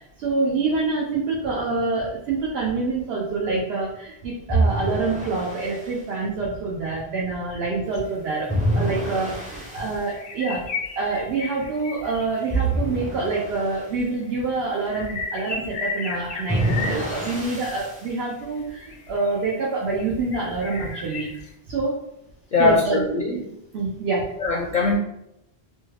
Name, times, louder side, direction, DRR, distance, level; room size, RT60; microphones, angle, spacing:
voice 1, 0.0-10.6 11.0-21.3 21.7-22.0 22.6-23.0 23.7-24.3, right 3 dB, 75° right, -4 dB, 0.9 m, -26 dB
sound 1, 4.5-5.9 8.5-10.0 12.5-13.9 16.5-18.0, right 1 dB, 10° right, 0.5 m, -26 dB
sound 2, 7.9-8.0 8.5-8.6 9.2-9.3 9.6-9.8 10.0-12.8 13.7-13.8 14.0-17.6 18.3-19.8 20.3-21.5, left 4 dB, 85° left, 0.9 m, -35 dB
voice 2, 22.5-23.4 24.4-25.0, left 3 dB, 55° left, -2 dB, 0.6 m, -21 dB
3.1 x 2.3 x 3.2 m, 0.80 s
omnidirectional pair, 1.1 m